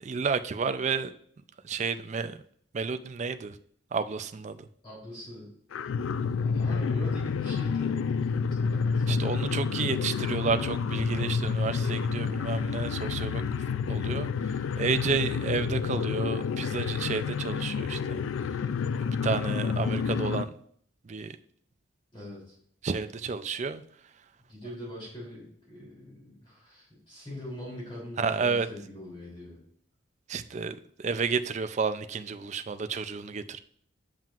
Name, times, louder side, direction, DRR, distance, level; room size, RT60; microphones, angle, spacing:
voice 1, 0.0-1.1 1.6-2.4 2.7-3.6 3.9-4.7 9.1-13.4 13.9-18.2 19.2-20.5 21.0-21.4 22.8-23.8 28.2-28.7 30.3-33.6, right 5 dB, 35° right, 0.3 m, -31 dB
voice 2, 4.8-5.5 6.4-9.3 22.1-22.5 24.5-29.6, left 1 dB, 25° left, 3.1 m, -42 dB
sound 1, 5.7-20.5, left 5 dB, 80° left, 0.3 m, -29 dB
7.5 x 7.4 x 2.4 m
head